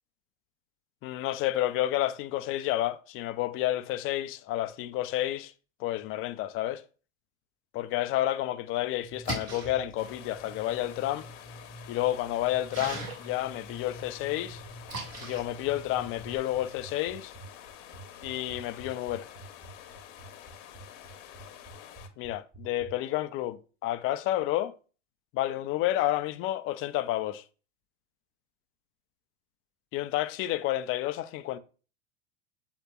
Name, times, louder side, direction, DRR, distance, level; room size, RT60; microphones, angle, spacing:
voice 1, 1.0-5.5 5.8-6.8 7.7-11.3 11.9-14.6 15.2-17.3 18.2-19.3 22.2-24.7 25.3-27.4 29.9-31.6, left 14 dB, 35° left, 0.4 m, -30 dB
Splash splatter, 9.0-16.4, right 2 dB, 40° right, 2.4 m, -42 dB
sound 1, 10.0-22.1, left 10 dB, 55° left, 0.9 m, -49 dB
sound 2, 14.5-22.9, right 4 dB, 15° right, 1.0 m, -50 dB
7.7 x 2.9 x 2.3 m
hypercardioid pair, 100°, 41 cm